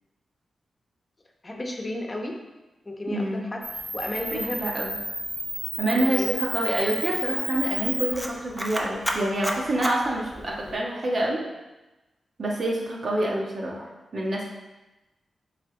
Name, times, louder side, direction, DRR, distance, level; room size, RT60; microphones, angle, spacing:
voice 1, 1.4-2.4 2.9-3.7 3.9-4.6 5.9-6.4 7.1-7.4 10.7-11.0 11.3-11.5 13.2-13.4, left 1 dB, 30° left, 1 dB, 0.9 m, -34 dB
voice 2, 3.1-3.5 4.3-4.9 5.8-11.4 12.4-13.8 14.1-14.5, right 1 dB, 55° right, -2 dB, 1.3 m, -27 dB
Camera, 3.6-10.8, right 1 dB, 15° right, 0.8 m, -31 dB
7.1 x 3.5 x 4.0 m, 1.1 s
cardioid pair, 65°, 0 cm